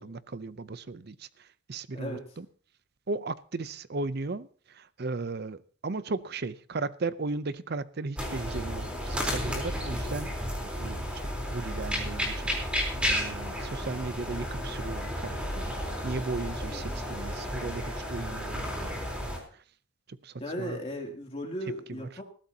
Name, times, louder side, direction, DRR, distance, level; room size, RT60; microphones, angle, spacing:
voice 1, 0.0-2.5 3.1-10.5 10.8-11.2 11.5-12.5 13.0-19.3 20.2-20.8, right 3 dB, 50° right, 0.6 m, -36 dB
sound 1, 8.2-19.4, equal, 5° right, 3.8 m, -32 dB
voice 2, 16.6-17.2 20.4-22.2, equal, 30° left, 2.8 m, -37 dB
20.0 x 14.5 x 2.9 m
head